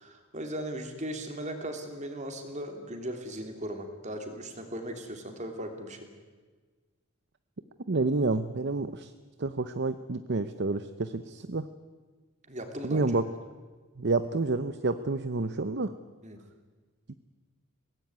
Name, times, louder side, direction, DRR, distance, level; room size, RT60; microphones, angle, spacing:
voice 1, 0.0-6.0 12.5-13.2 16.2-16.4, right 1 dB, 35° right, 5 dB, 3.1 m, -38 dB
voice 2, 7.9-9.1 9.4-11.6 12.8-13.2 14.0-15.9, right 3 dB, 50° right, 11 dB, 0.7 m, -29 dB
22.5 x 18.0 x 9.5 m, 1.4 s
head